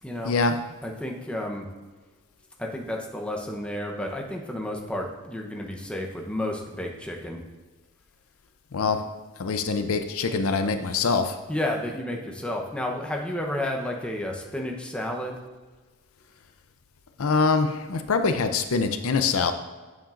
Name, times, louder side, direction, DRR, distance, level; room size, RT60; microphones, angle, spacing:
voice 1, 0.0-1.7 2.6-7.4 11.5-15.4, left 1 dB, 5° left, 1 dB, 0.8 m, -31 dB
voice 2, 9.4-11.4 17.2-19.5, left 4 dB, 65° left, 8 dB, 0.5 m, -24 dB
8.8 x 7.4 x 2.5 m, 1.3 s
head